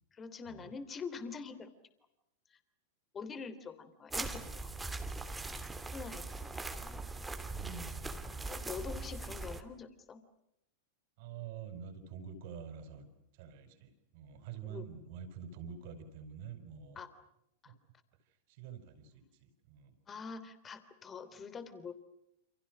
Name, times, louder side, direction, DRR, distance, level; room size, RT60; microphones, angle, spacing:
voice 1, 0.1-1.7 2.5-2.6 3.1-4.7 5.9-7.0 8.5-10.2 14.7-14.9 16.9-17.1 17.6-17.7 20.1-21.9, left 5 dB, 20° left, 13 dB, 3.2 m, -45 dB
sound 1, 4.1-9.6, right 3 dB, 10° right, 2.8 m, -41 dB
voice 2, 7.5-8.5 11.2-17.1 17.6-17.8 18.2-20.0, right 7 dB, 50° right, 10 dB, 5.3 m, -48 dB
29.0 x 29.0 x 6.3 m, 0.81 s
figure-of-eight pair, 95°, 0 cm